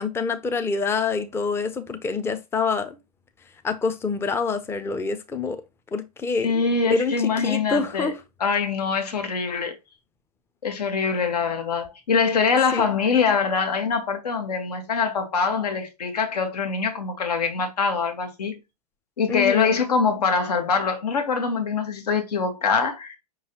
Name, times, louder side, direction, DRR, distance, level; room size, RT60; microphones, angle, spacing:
voice 1, 0.0-3.0 3.6-5.6 5.9-6.6 6.9-7.1 7.4-8.2 12.7-12.9 19.3-19.8, left 5 dB, 10° left, 0.5 m, -26 dB
voice 2, 6.4-8.1 8.4-9.8 10.6-18.6 19.2-23.2, left 5 dB, 75° left, 1.3 m, -24 dB
5.3 x 3.1 x 2.9 m
hypercardioid pair, 105°, 20 cm